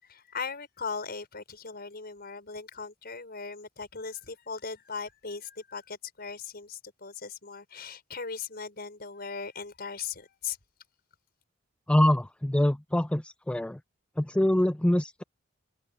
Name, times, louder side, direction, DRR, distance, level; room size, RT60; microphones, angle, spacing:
voice 1, 0.0-10.6, left 5 dB, 50° left, 5.5 m, -38 dB
voice 2, 11.9-13.8 14.2-15.2, left 1 dB, 5° left, 0.3 m, -24 dB
open air
head